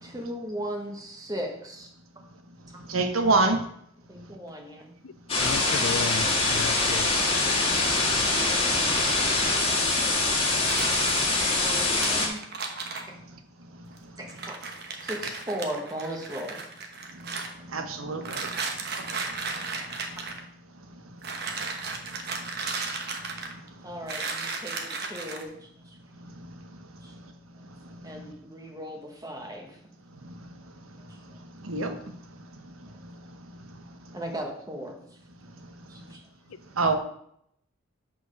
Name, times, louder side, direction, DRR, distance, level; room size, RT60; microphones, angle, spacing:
voice 1, 0.0-1.9 2.7-2.8 3.2-3.3 4.1-4.9 11.5-12.4 14.2-14.6 15.0-16.6 23.8-25.5 25.9-26.0 27.0-27.1 28.0-29.8 31.1-31.2 34.1-35.0 35.9-36.2, equal, 15° right, 2 dB, 1.3 m, -37 dB
voice 2, 2.9-3.6 17.7-18.5 31.6-31.9 36.8-36.9, right 3 dB, 85° right, 6 dB, 1.1 m, -24 dB
sound 1, 5.3-12.3, left 2 dB, 30° left, 1.9 m, -24 dB
voice 3, 5.4-7.2, left 6 dB, 75° left, 16 dB, 0.4 m, -33 dB
sound 2, 10.6-13.1 14.0-14.1 14.3-17.5 18.2-20.4 21.2-23.7 24.1-25.4, right 4 dB, 50° right, 1.1 m, -34 dB
8.0 x 4.5 x 6.5 m, 0.71 s
head